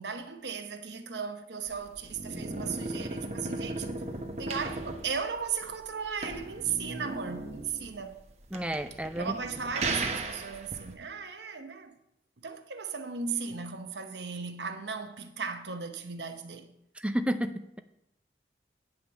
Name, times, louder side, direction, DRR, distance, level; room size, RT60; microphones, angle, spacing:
voice 1, 0.0-4.1 4.4-8.2 9.2-11.9 12.4-16.7, right 6 dB, 80° right, 0.9 m, -36 dB
sound 1, 1.7-10.9, right 2 dB, 40° right, 1.0 m, -37 dB
voice 2, 8.5-9.3 17.0-17.8, equal, 5° right, 0.4 m, -31 dB
9.2 x 5.1 x 7.1 m
head